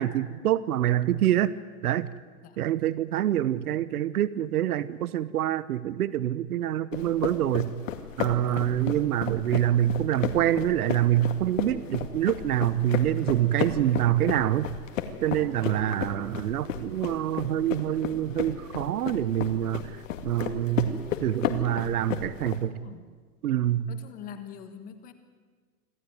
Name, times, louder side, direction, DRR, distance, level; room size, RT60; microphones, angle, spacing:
voice 1, 0.0-1.5 1.8-2.1 2.6-7.7 8.2-14.7 15.2-20.0 20.2-20.9 21.2-22.8 23.4-23.9, right 12 dB, 75° right, 16 dB, 1.1 m, -26 dB
sound 1, 6.9-22.6, left 9 dB, 55° left, 2.3 m, -33 dB
voice 2, 22.6-23.0 23.9-25.1, left 8 dB, 20° left, 9 dB, 1.5 m, -44 dB
26.0 x 15.5 x 9.4 m, 1.5 s
hypercardioid pair, 165°, 45 cm